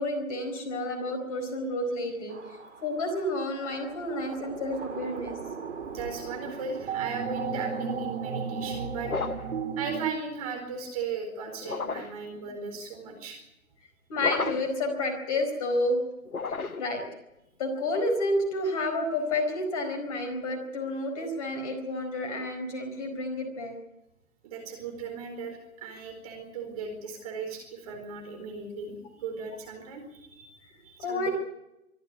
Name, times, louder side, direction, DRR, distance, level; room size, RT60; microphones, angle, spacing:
voice 1, 0.0-5.4 14.1-16.0 16.5-17.0 17.6-23.8 31.0-31.3, left 1 dB, 25° left, 2 dB, 4.6 m, -30 dB
sound 1, 2.3-10.1, right 6 dB, 55° right, 2.6 m, -35 dB
voice 2, 5.9-9.1 9.8-13.4 24.4-31.3, right 5 dB, 25° right, 3 dB, 4.3 m, -37 dB
sound 2, 9.0-9.6 11.6-12.2 14.2-14.8 16.3-17.0, left 4 dB, 75° left, 1.3 m, -33 dB
24.5 x 13.0 x 9.6 m, 0.91 s
figure-of-eight pair, 150°, 43 cm